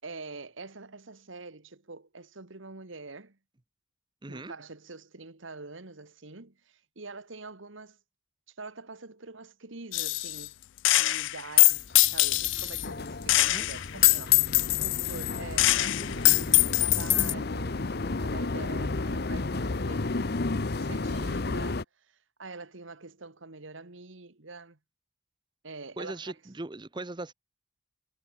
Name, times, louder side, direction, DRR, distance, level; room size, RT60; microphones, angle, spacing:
voice 1, 0.0-3.4 4.3-8.0 8.5-10.6 10.9-20.3 20.7-24.8 25.6-26.2, right 3 dB, 75° right, 1.8 m, -45 dB
voice 2, 4.2-4.5 13.5-13.7 26.0-27.3, right 2 dB, 25° right, 0.7 m, -39 dB
Gunshot gunfire, 9.9-10.5 10.8-12.9 13.3-17.3, left 20 dB, 70° left, 0.3 m, -23 dB
sound 1, 11.9-21.8, left 3 dB, 50° left, 0.9 m, -33 dB
Wind instrument woodwind instrument, 16.7-21.3, left 1 dB, 25° left, 6.4 m, -58 dB
head